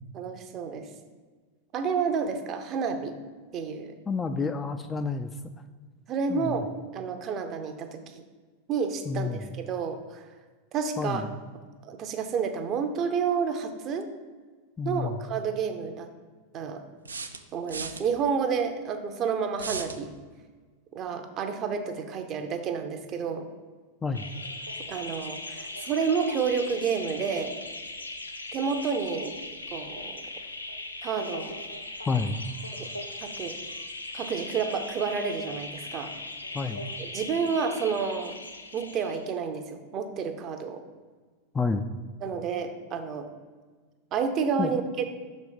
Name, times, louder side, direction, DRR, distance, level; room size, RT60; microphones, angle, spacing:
voice 1, 0.1-0.9 1.7-3.1 3.5-3.9 6.1-8.2 8.7-10.2 10.7-11.2 11.8-14.1 14.8-16.1 16.5-16.8 17.5-20.1 20.9-23.5 24.9-27.6 28.5-29.4 29.7-30.2 31.0-31.5 32.7-32.9 33.2-33.6 34.1-36.1 37.0-38.4 38.7-40.8 42.2-43.3 44.1-45.1, right 6 dB, 35° right, 7 dB, 0.7 m, -30 dB
voice 2, 4.1-5.3 6.3-6.7 9.1-9.4 11.0-11.3 14.8-15.2 24.0-24.3 32.1-32.4 36.5-36.9 41.5-41.9 44.6-44.7, left 4 dB, 15° left, 7 dB, 0.3 m, -29 dB
sound 1, 15.0-15.1 17.0-18.0 19.6-20.0, right 4 dB, 75° right, 0.4 m, -36 dB
sound 2, 24.1-39.3, left 2 dB, 80° left, 0.5 m, -39 dB
6.2 x 4.2 x 5.1 m, 1.4 s
figure-of-eight pair, 90°, 0 cm